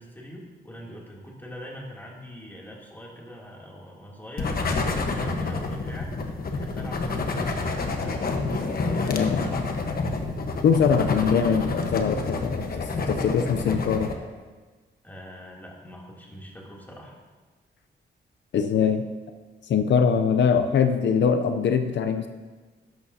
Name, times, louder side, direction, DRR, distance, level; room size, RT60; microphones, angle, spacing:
voice 1, 0.0-6.1 6.4-9.7 15.0-17.2, equal, 10° left, -4 dB, 2.9 m, -43 dB
sound 1, 4.4-14.1, left 3 dB, 55° left, 1.2 m, -28 dB
voice 2, 9.1-9.4 10.6-14.1 18.5-19.1 19.6-22.3, left 6 dB, 75° left, 8 dB, 0.6 m, -22 dB
13.0 x 10.5 x 2.8 m, 1.3 s
cardioid pair, 90°, 19 cm